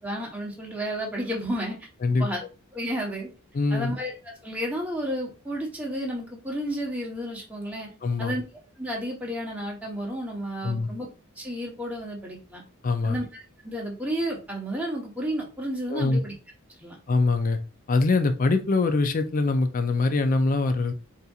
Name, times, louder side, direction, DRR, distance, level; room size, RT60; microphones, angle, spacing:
voice 1, 0.0-1.9 2.2-2.4 2.7-3.3 3.7-7.9 8.2-8.4 8.8-11.1 11.4-12.6 13.0-16.3 16.8-17.0, equal, 5° right, -3 dB, 0.9 m, -32 dB
voice 2, 3.5-3.9 8.0-8.4 10.6-10.9 12.8-13.2 15.9-16.2 17.1-17.6 17.9-20.9, left 3 dB, 40° left, 8 dB, 0.4 m, -23 dB
4.2 x 2.6 x 2.3 m, 0.31 s
head